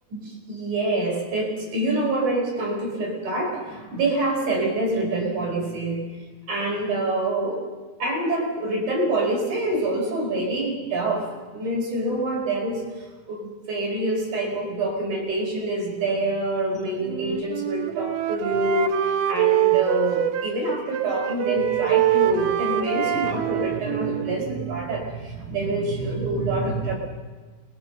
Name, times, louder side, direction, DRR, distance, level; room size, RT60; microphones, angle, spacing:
voice 1, 0.1-6.0 6.5-7.7 8.0-11.3 11.5-26.9, right 2 dB, 55° right, -1 dB, 6.2 m, -26 dB
Wind instrument woodwind instrument, 17.1-20.6 20.9-24.9, right 12 dB, 70° right, 2.5 m, -25 dB
29.5 x 22.0 x 6.7 m, 1.4 s
omnidirectional pair, 4.3 m